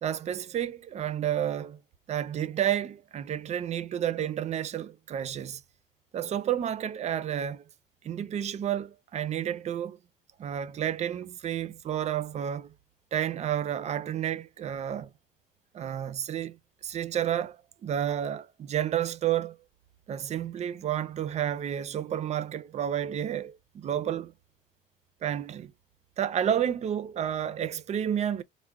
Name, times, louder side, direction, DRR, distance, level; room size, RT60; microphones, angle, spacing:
voice 1, 0.0-1.8 2.1-5.6 6.1-7.6 8.0-10.0 10.4-12.7 13.1-15.1 15.7-16.6 16.8-19.6 20.1-24.3 25.2-25.7 26.2-28.4, right 10 dB, 40° right, 0.4 m, -30 dB
3.5 x 2.1 x 2.2 m
cardioid pair, 110°, 17 cm